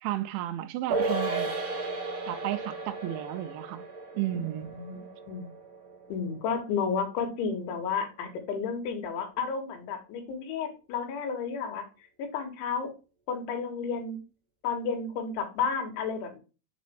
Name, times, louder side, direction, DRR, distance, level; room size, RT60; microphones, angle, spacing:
voice 1, 0.0-1.5 2.3-3.8 4.1-4.7, right 14 dB, 85° right, 3.0 m, -33 dB
sound 1, 0.9-7.6 7.8-7.9, right 3 dB, 35° right, 1.3 m, -35 dB
voice 2, 4.3-5.5 6.1-11.8 12.2-12.9 13.3-14.2 14.6-16.4, left 5 dB, 90° left, 3.9 m, -32 dB
7.5 x 4.1 x 3.3 m
omnidirectional pair, 5.3 m